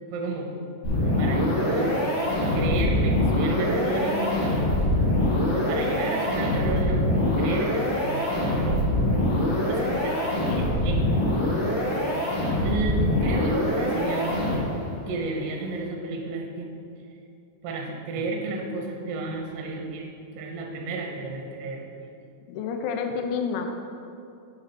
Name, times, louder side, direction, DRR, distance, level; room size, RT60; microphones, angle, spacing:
voice 1, 0.1-0.5 1.2-2.0 2.5-4.4 5.5-8.9 9.7-11.0 11.9-12.1 12.6-14.6 15.1-16.7 17.6-22.1, right 2 dB, 80° right, 1 dB, 2.8 m, -32 dB
sound 1, 0.8-14.9, left 1 dB, 45° left, 2.7 m, -24 dB
voice 2, 9.8-10.7 22.5-23.7, left 6 dB, 85° left, 4 dB, 2.9 m, -30 dB
8.5 x 4.0 x 5.8 m, 2.5 s
omnidirectional pair, 5.0 m